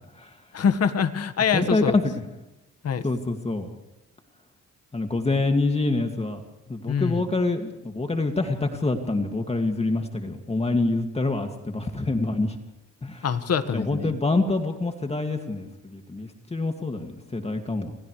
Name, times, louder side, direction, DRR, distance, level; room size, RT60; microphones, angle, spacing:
voice 1, 0.5-2.0 2.8-3.0 6.9-7.3 13.2-14.1, left 7 dB, 55° left, 9 dB, 1.8 m, -24 dB
voice 2, 1.5-2.1 3.0-3.7 4.9-6.4 6.7-12.6 13.0-13.3 13.7-17.9, left 2 dB, 20° left, 4 dB, 2.4 m, -26 dB
29.5 x 27.0 x 3.4 m, 0.99 s
cardioid pair, 90°, 30 cm